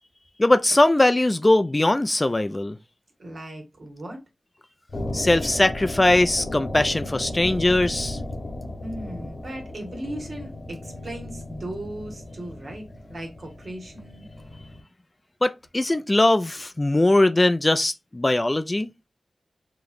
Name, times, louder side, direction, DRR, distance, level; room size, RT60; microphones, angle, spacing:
voice 1, 0.4-2.8 5.1-8.2 15.4-18.9, left 1 dB, 25° left, 0.3 m, -20 dB
voice 2, 3.2-4.2 8.8-14.3, right 1 dB, 65° right, 1.7 m, -37 dB
sound 1, 4.9-14.8, left 1 dB, 60° left, 1.0 m, -35 dB
4.8 x 3.0 x 2.6 m
wide cardioid pair, 75°, 0 cm